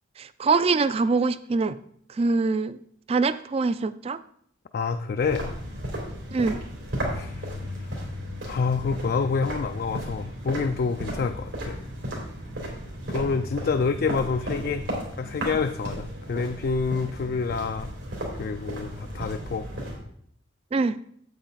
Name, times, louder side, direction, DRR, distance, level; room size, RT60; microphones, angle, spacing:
voice 1, 0.2-1.8 2.1-2.8 3.1-4.2 6.3-6.6 20.7-21.0, right 4 dB, 30° right, 14 dB, 0.3 m, -24 dB
voice 2, 4.7-5.5 7.1-7.7 8.4-11.8 13.1-14.8 15.2-17.9 18.4-19.7, left 5 dB, 50° left, 8 dB, 0.4 m, -27 dB
sound 1, 5.2-20.0, equal, 85° right, 3.3 m, -34 dB
8.4 x 8.0 x 3.9 m, 0.64 s
head